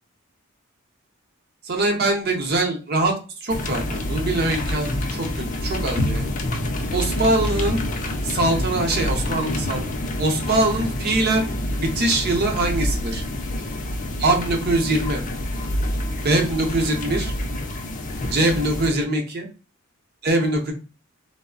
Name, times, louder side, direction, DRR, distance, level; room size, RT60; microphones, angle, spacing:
voice 1, 1.6-6.3 6.9-7.8 8.2-9.8 10.2-13.2 14.2-15.2 16.2-17.3 18.3-19.5 20.2-20.7, right 2 dB, 50° right, 3 dB, 0.7 m, -23 dB
sound 1, 3.5-18.9, left 1 dB, 40° left, 0.4 m, -27 dB
3.1 x 2.0 x 2.3 m, 0.34 s
head